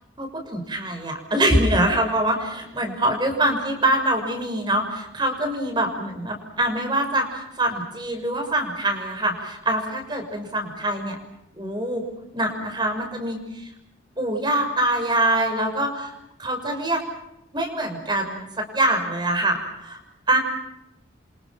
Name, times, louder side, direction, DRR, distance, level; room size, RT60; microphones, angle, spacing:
voice 1, 0.2-11.2 11.5-12.0 12.3-13.7 14.2-16.1 16.4-17.0 17.5-20.0 20.3-20.4, right 1 dB, 25° right, 5 dB, 6.1 m, -24 dB
29.0 x 26.5 x 6.1 m, 0.84 s
head